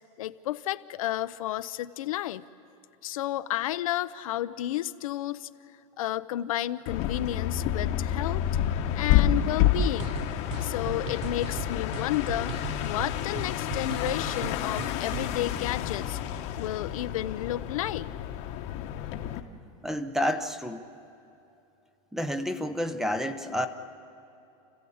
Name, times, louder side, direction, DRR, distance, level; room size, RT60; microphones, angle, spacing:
voice 1, 0.2-2.4 3.0-5.5 6.0-8.4 8.9-10.2 10.6-12.5 12.8-16.2 16.6-18.1, left 14 dB, 85° left, 13 dB, 0.7 m, -31 dB
sound 1, 6.9-19.4, left 10 dB, 40° left, 1.1 m, -29 dB
sound 2, 9.8-15.4, right 11 dB, 60° right, 0.6 m, -39 dB
voice 2, 19.8-20.8 22.1-23.7, equal, ahead, 10 dB, 0.7 m, -29 dB
29.5 x 15.0 x 8.6 m, 2.9 s
supercardioid pair, 160°, 17 cm